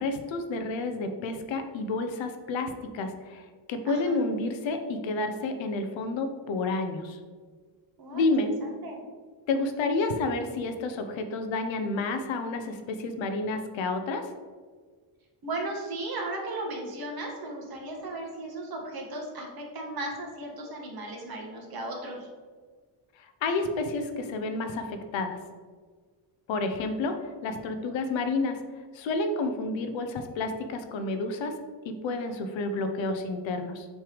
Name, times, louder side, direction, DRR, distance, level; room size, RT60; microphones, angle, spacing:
voice 1, 0.0-3.4 3.7-7.2 8.1-8.5 9.5-14.3 23.4-25.4 26.5-27.2 27.4-28.6 28.9-31.5 31.8-33.9, left 3 dB, 70° left, 7 dB, 0.9 m, -30 dB
voice 2, 3.9-4.2 8.0-9.0 15.4-22.3, right 2 dB, 50° right, -1 dB, 1.8 m, -36 dB
6.1 x 3.4 x 5.1 m, 1.5 s
cardioid pair, 95°, 48 cm